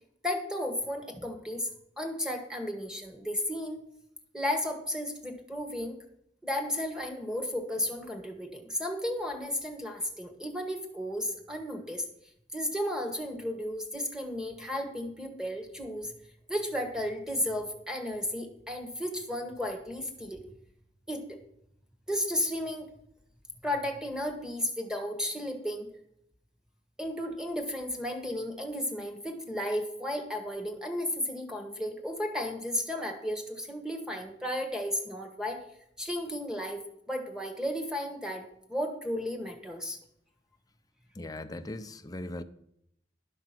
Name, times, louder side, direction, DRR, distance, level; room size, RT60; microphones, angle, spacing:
voice 1, 0.2-1.7 2.0-3.8 4.3-6.0 6.4-12.1 12.5-16.1 16.5-20.4 21.1-21.4 22.1-22.9 23.6-25.9 27.0-35.6 36.0-36.8 37.1-40.0, left 1 dB, 5° right, 1.5 m, -33 dB
voice 2, 41.2-42.4, left 1 dB, 20° left, 0.6 m, -39 dB
12.0 x 6.0 x 5.9 m
head